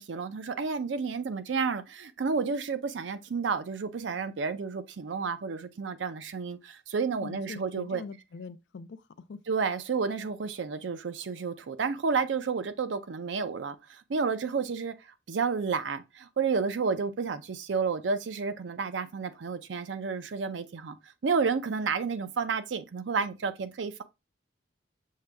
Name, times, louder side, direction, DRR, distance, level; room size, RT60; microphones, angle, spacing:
voice 1, 0.0-8.0 9.5-13.8 14.1-14.9 15.3-21.0 21.2-24.0, right 5 dB, 90° right, 0.5 m, -31 dB
voice 2, 7.2-9.4, left 5 dB, 75° left, 0.4 m, -43 dB
6.4 x 2.2 x 3.4 m
head